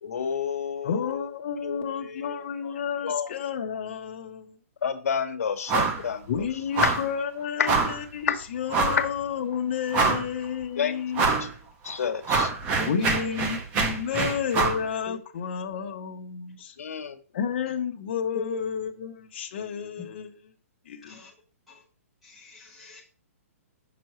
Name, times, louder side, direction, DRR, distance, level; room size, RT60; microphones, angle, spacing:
voice 1, 0.0-1.3 1.6-2.7 3.0-3.3 4.8-6.2 6.8-7.0 7.6-7.7 8.3-8.4 9.0-9.1 10.8-11.0 11.4-11.5 11.8-12.5 16.8-17.2, left 7 dB, 80° left, 8 dB, 1.0 m, -29 dB
voice 2, 0.8-4.6 6.3-11.2 12.8-16.7 17.3-20.3 20.9-21.2, left 7 dB, 45° left, 3 dB, 0.9 m, -31 dB
sound 1, 5.7-6.0 6.3-6.4 6.7-7.1 7.7-8.0 8.7-9.1 9.5-9.6 9.9-10.4 11.1-11.5 11.9-14.8, right 4 dB, 15° right, 0.6 m, -25 dB
voice 3, 12.8-13.3 15.1-15.2 18.3-18.6 21.1-21.3 21.7-21.8 22.2-23.0, equal, ahead, -4 dB, 1.3 m, -38 dB
6.0 x 5.7 x 3.1 m, 0.38 s
hypercardioid pair, 170°, 8 cm